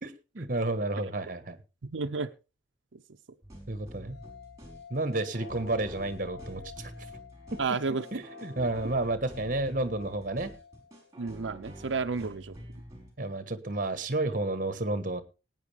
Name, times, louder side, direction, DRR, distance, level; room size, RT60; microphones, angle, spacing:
voice 1, 0.0-1.6 3.7-4.2 4.9-6.9 7.5-7.6 8.1-10.5 13.2-15.2, right 2 dB, 45° right, 11 dB, 1.4 m, -31 dB
voice 2, 1.8-2.3 2.9-3.0 7.6-8.0 11.2-12.6, right 4 dB, 90° right, 7 dB, 0.7 m, -31 dB
sound 1, 3.4-13.1, equal, 20° right, 4.9 m, -47 dB
sound 2, 4.0-11.2, left 7 dB, 80° left, 4.8 m, -50 dB
19.5 x 9.3 x 3.4 m, 0.31 s
head